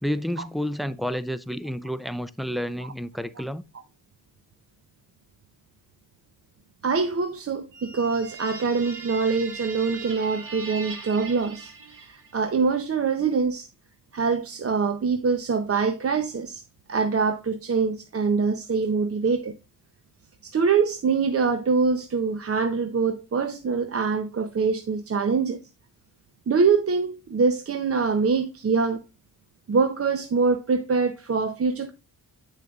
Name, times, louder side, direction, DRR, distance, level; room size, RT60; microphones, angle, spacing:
voice 1, 0.0-3.6, equal, ahead, 0.3 m, -30 dB
voice 2, 6.8-13.7 14.1-16.6 16.9-19.5 20.4-25.6 26.5-29.0 29.7-31.9, right 5 dB, 35° right, 0.7 m, -24 dB
sound 1, 7.7-12.4, right 4 dB, 55° right, 2.2 m, -40 dB
8.6 x 6.5 x 2.3 m
wide cardioid pair, 110°, 40 cm